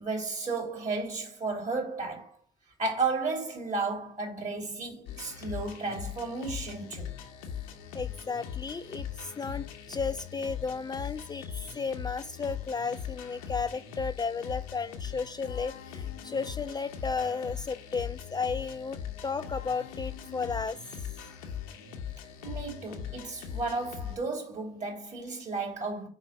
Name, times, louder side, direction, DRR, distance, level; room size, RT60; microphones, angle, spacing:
voice 1, 0.0-2.4 2.8-7.1 22.4-26.1, right 3 dB, 45° right, 3.0 m, -33 dB
sound 1, 5.1-24.2, left 8 dB, 85° left, 0.9 m, -40 dB
voice 2, 7.9-21.1, left 5 dB, 25° left, 0.4 m, -34 dB
4.7 x 4.1 x 5.2 m
hypercardioid pair, 60°, 17 cm